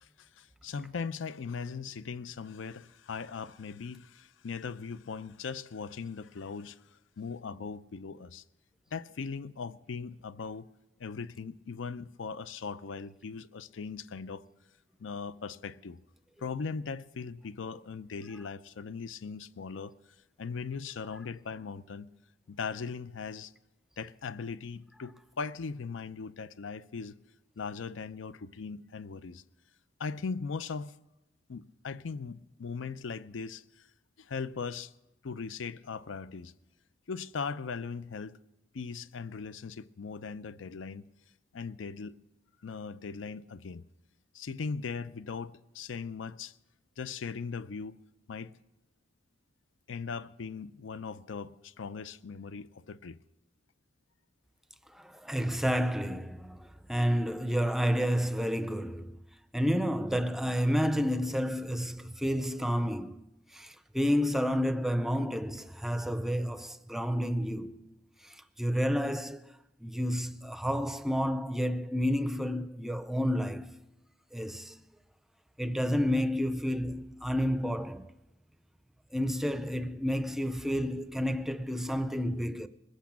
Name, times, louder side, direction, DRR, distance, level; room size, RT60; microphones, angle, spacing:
voice 1, 0.0-6.8 7.2-8.4 8.9-10.7 11.0-14.4 15.0-16.0 16.4-19.9 20.4-22.1 22.5-23.5 24.0-27.1 27.6-29.4 30.0-30.9 31.5-33.9 34.2-34.9 35.2-36.5 37.1-38.4 38.7-41.0 41.5-42.2 42.6-43.8 44.3-46.5 47.0-48.0 48.3-48.5 49.9-53.2, left 5 dB, 90° left, 0.5 m, -39 dB
voice 2, 54.9-59.2 59.5-67.9 68.2-69.6 69.8-73.8 74.3-74.9 75.6-78.1 79.1-82.7, equal, ahead, 0.4 m, -30 dB
20.5 x 8.2 x 7.3 m
head